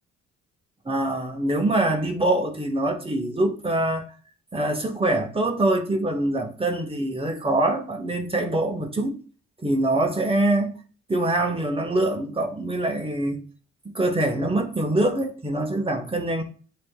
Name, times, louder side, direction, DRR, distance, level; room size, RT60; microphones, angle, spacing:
voice 1, 0.8-4.0 4.5-9.2 9.6-10.8 11.1-13.4 13.9-16.4, right 1 dB, 20° right, 1.1 m, -24 dB
9.6 x 4.2 x 2.3 m
cardioid pair, 90°, 30 cm